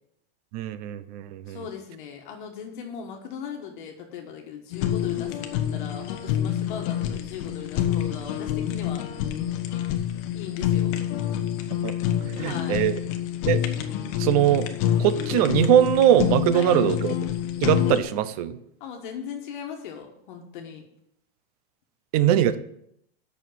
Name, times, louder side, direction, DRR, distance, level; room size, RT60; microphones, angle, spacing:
voice 1, 0.5-1.6 11.8-11.9 12.3-13.0 13.5-13.6 14.2-14.7 15.0-17.1 17.6-18.6 22.1-22.6, right 11 dB, 40° right, 14 dB, 0.6 m, -21 dB
voice 2, 1.5-9.0 10.3-11.0 12.4-12.8 16.5-16.8 18.8-20.9, left 7 dB, 55° left, 2 dB, 1.5 m, -38 dB
Fire, 4.7-18.0, left 11 dB, 35° left, 0.9 m, -27 dB
8.4 x 6.4 x 7.3 m, 0.74 s
supercardioid pair, 175°, 30 cm